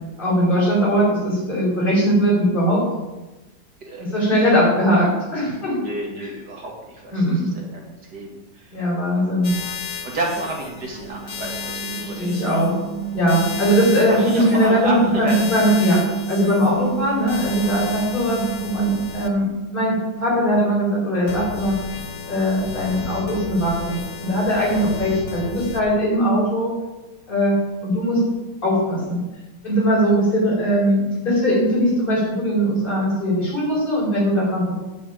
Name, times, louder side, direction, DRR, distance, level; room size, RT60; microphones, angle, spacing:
voice 1, 0.2-2.8 4.0-5.8 7.1-7.5 8.7-9.5 11.9-12.7 13.1-16.0 16.3-19.5 19.7-21.7 22.3-26.7 27.3-27.5 27.8-28.2 28.6-29.2 29.6-34.7, equal, 25° left, -6 dB, 5.3 m, -20 dB
voice 2, 3.8-4.5 5.7-7.8 8.1-8.8 9.2-9.5 9.9-12.7 14.1-15.4 15.8-15.9 25.7-26.0, right 2 dB, 60° right, -1 dB, 3.0 m, -32 dB
sound 1, 9.4-19.3 21.3-25.8, left 6 dB, 65° left, 1.7 m, -34 dB
sound 2, 10.7-20.8, right 10 dB, 85° left, 4.0 m, -31 dB
9.4 x 7.0 x 8.7 m, 1.1 s
omnidirectional pair, 2.1 m